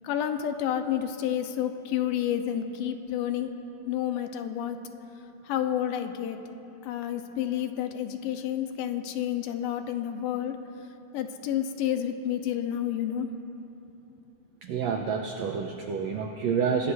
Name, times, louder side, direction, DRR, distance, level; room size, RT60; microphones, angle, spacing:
voice 1, 0.0-3.5 3.9-4.8 5.4-6.4 6.8-10.6 11.1-13.3, left 10 dB, 85° left, 6 dB, 2.4 m, -30 dB
voice 2, 14.6-16.9, right 6 dB, 90° right, 3 dB, 1.5 m, -28 dB
26.0 x 19.0 x 2.6 m, 3.0 s
omnidirectional pair, 3.9 m